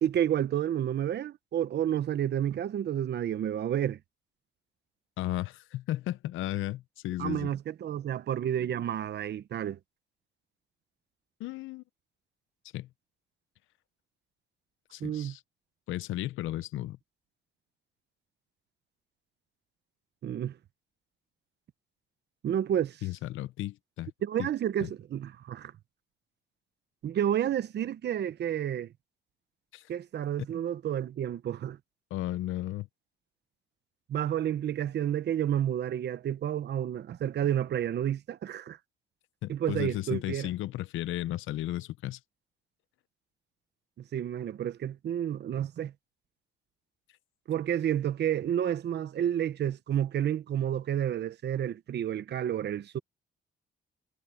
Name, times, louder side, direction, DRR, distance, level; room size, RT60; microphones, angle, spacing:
voice 1, 0.0-4.0 7.2-9.8 15.0-15.3 20.2-20.5 22.4-23.0 24.2-25.7 27.0-28.9 29.9-31.8 34.1-38.8 39.5-40.5 44.1-45.9 47.5-53.0, right 10 dB, 60° right, 1.0 m, -30 dB
voice 2, 5.2-7.5 11.4-11.8 12.7-12.9 14.9-15.4 15.9-17.0 23.0-24.1 24.4-24.5 24.8-24.9 29.7-29.9 32.1-32.9 39.4-42.2, left 15 dB, 85° left, 0.8 m, -34 dB
cardioid pair, 90°, 20 cm